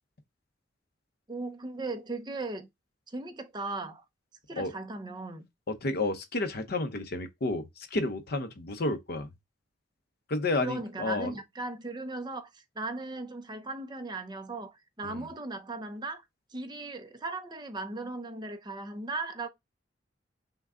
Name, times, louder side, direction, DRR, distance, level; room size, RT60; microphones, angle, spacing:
voice 1, 1.3-2.7 3.1-4.0 4.5-5.5 10.6-16.2 16.5-19.5, right 2 dB, 25° right, 0.7 m, -37 dB
voice 2, 5.7-9.3 10.3-11.3 15.0-15.3, left 2 dB, 55° left, 0.8 m, -31 dB
5.8 x 2.3 x 3.6 m
head